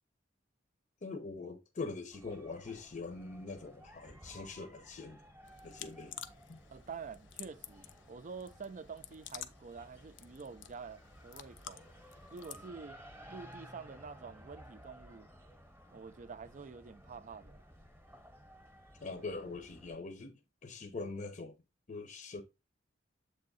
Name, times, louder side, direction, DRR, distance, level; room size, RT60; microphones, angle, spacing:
voice 1, 1.0-5.2 5.6-6.2 6.5-6.6 19.0-20.3 20.6-21.5 21.9-22.4, left 3 dB, 45° left, 0.7 m, -43 dB
sound 1, 2.1-20.0, equal, 10° right, 1.0 m, -56 dB
sound 2, 5.4-12.7, left 11 dB, 80° left, 0.6 m, -51 dB
voice 2, 6.7-11.8 12.3-13.0 13.3-15.3 15.9-17.6, right 5 dB, 45° right, 0.4 m, -48 dB
7.5 x 3.5 x 4.0 m
head